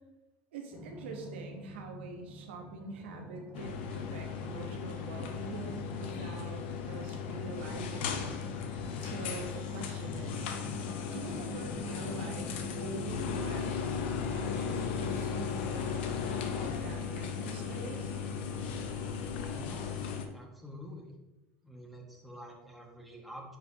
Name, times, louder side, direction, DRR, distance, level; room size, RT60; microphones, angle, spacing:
voice 1, 0.5-6.6 6.9-8.3 9.0-10.5 11.1-12.5 12.8-14.0 14.3-18.2, right 3 dB, 85° right, 3 dB, 1.1 m, -44 dB
sound 1, 0.7-18.8, equal, 35° right, 1.9 m, -49 dB
sound 2, 3.5-20.3, left 6 dB, 80° left, 0.8 m, -36 dB
voice 2, 19.5-20.0 20.3-21.1 21.6-23.6, equal, ahead, -1 dB, 1.7 m, -48 dB
9.4 x 4.8 x 2.9 m, 1.0 s
hypercardioid pair, 90°, 6 cm